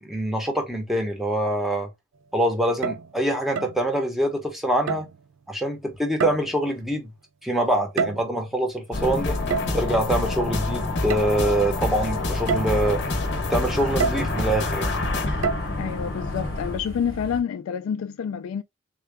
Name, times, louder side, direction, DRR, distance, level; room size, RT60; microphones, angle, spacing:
voice 1, 0.0-1.9 2.3-5.0 5.5-7.1 7.4-9.4 9.7-13.0 13.5-14.9, right 1 dB, ahead, 0.8 m, -24 dB
sound 1, 2.7-3.1 3.5-3.8 4.9-5.2 6.2-6.7 7.7-8.5 9.5-9.9 11.1-11.3 11.8-11.9 12.5-12.8 14.0-14.4 15.4-15.6, right 5 dB, 65° right, 0.3 m, -27 dB
sound 2, 8.9-16.8, left 2 dB, 55° left, 0.8 m, -27 dB
sound 3, 11.7-17.4, left 2 dB, 85° right, 2.1 m, -37 dB
voice 2, 15.8-18.6, left 7 dB, 80° left, 0.3 m, -28 dB
3.7 x 2.2 x 3.3 m
head